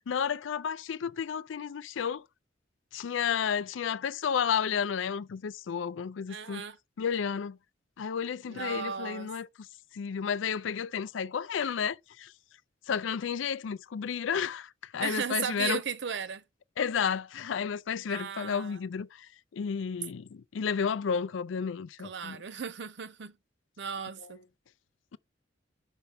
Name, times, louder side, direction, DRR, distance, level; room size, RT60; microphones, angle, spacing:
voice 1, 0.1-2.2 2.9-6.6 7.0-7.6 8.0-9.5 9.9-12.3 12.9-15.8 16.8-19.3 19.5-22.4, left 7 dB, 80° left, 0.4 m, -32 dB
voice 2, 6.3-6.8 8.5-9.3 15.0-16.4 18.1-18.8 22.0-23.4 23.8-24.4, right 7 dB, 65° right, 0.6 m, -36 dB
5.8 x 5.3 x 3.4 m
head